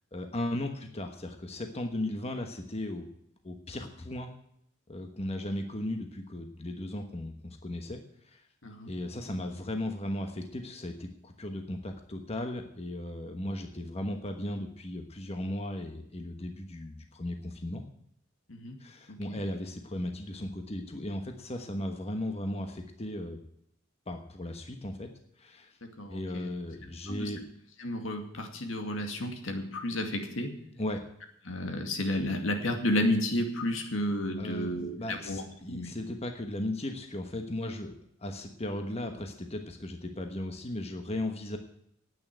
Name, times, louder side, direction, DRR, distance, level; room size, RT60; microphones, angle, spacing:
voice 1, 0.1-3.0 3.4-4.3 4.9-8.5 8.9-17.8 18.8-23.4 24.1-25.1 25.4-25.8 26.1-27.4 30.8-31.0 34.4-37.9 38.2-41.6, left 1 dB, 30° left, 5 dB, 1.2 m, -36 dB
voice 2, 19.1-19.4 25.8-26.5 27.1-27.3 27.8-30.6 31.5-35.4 35.7-35.9, left 1 dB, 75° left, 4 dB, 2.3 m, -32 dB
9.7 x 9.1 x 9.1 m, 0.72 s
head